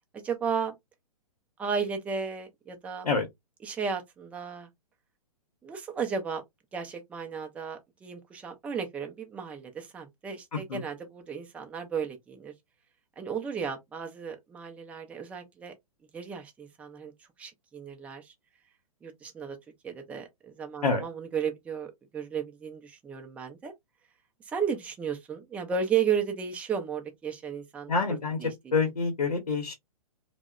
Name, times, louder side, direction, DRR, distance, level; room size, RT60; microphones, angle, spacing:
voice 1, 0.1-0.7 1.6-3.1 3.6-4.7 5.6-6.4 6.7-12.5 13.2-15.7 16.1-17.1 17.4-18.3 19.0-19.6 19.8-23.7 24.5-27.9 28.4-28.7, right 6 dB, 5° right, 0.3 m, -34 dB
voice 2, 27.9-28.4 28.7-29.7, left 4 dB, 80° left, 0.7 m, -26 dB
2.7 x 2.0 x 2.3 m
figure-of-eight pair, 120°, 20 cm